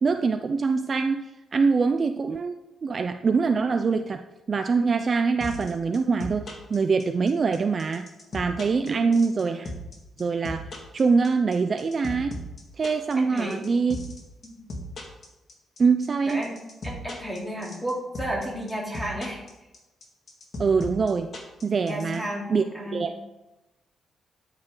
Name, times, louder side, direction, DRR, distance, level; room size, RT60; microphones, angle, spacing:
voice 1, 0.0-8.1 8.3-9.7 10.2-10.6 10.9-12.4 12.8-14.0 15.8-16.5 20.6-21.3 21.6-22.2 22.5-22.6 22.9-23.2, right 4 dB, 35° right, 7 dB, 0.5 m, -24 dB
sound 1, 5.4-22.2, left 1 dB, 40° left, 2.2 m, -37 dB
voice 2, 13.2-13.6 14.4-14.6 16.3-19.4 21.8-23.1, equal, 5° left, -3 dB, 3.1 m, -33 dB
13.5 x 9.0 x 3.9 m, 1.0 s
wide cardioid pair, 150°, 0 cm